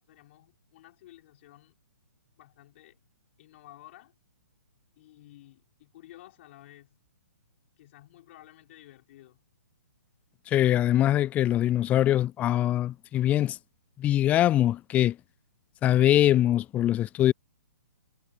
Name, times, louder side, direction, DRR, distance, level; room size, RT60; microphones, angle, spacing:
voice 1, 0.0-1.8 2.4-3.0 3.4-4.1 5.0-7.0 7.8-9.4, left 15 dB, 45° left, 5.4 m, -53 dB
voice 2, 10.5-13.6 14.0-15.2 15.8-17.3, left 12 dB, 15° left, 0.3 m, -23 dB
hypercardioid pair, 135°, 9 cm